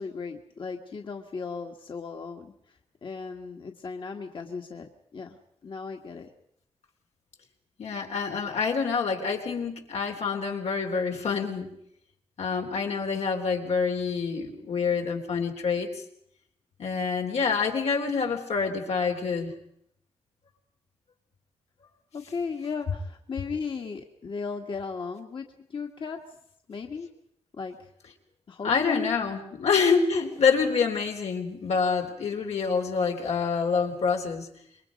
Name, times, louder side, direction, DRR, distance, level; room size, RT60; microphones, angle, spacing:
voice 1, 0.0-2.5 3.0-6.3 22.1-26.2 26.7-27.1 27.5-27.9 28.5-29.2, left 5 dB, 50° left, 3 dB, 1.6 m, -36 dB
voice 2, 7.8-11.7 12.4-15.9 16.8-19.5 28.6-34.5, left 5 dB, 85° left, 2 dB, 3.8 m, -27 dB
27.0 x 23.0 x 5.2 m, 0.71 s
wide cardioid pair, 150°, 11 cm